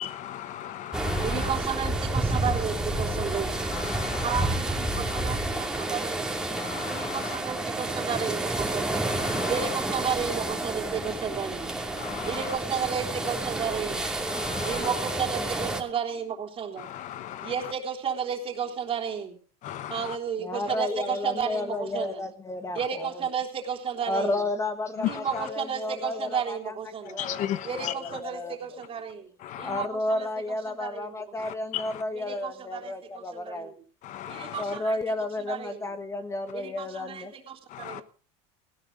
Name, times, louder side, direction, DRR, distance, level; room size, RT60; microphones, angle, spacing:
voice 1, 0.0-1.4 3.7-4.3 5.1-5.2 6.6-7.1 9.1-9.5 12.0-12.4 14.3-14.9 16.8-17.5 19.6-20.0 25.0-25.1 27.2-27.9 29.4-29.8 31.4-31.8 34.0-34.6 37.7-38.0, left 12 dB, 50° left, 14 dB, 1.1 m, -35 dB
sound 1, 0.9-15.8, right 1 dB, 5° right, 2.7 m, -30 dB
voice 2, 1.2-3.6 4.2-6.3 6.9-9.0 9.5-11.7 12.3-14.1 14.7-16.9 17.4-19.4 19.9-22.2 22.8-24.4 25.1-27.2 27.6-29.3 29.6-31.2 32.1-33.7 34.3-35.0 35.5-35.8 36.5-38.0, right 7 dB, 35° right, 3 dB, 3.5 m, -33 dB
voice 3, 20.4-23.1 24.0-26.7 27.0-28.8 29.6-33.7 34.6-37.3, left 2 dB, 20° left, 9 dB, 1.4 m, -32 dB
18.0 x 16.5 x 3.9 m, 0.39 s
supercardioid pair, 115°, 16 cm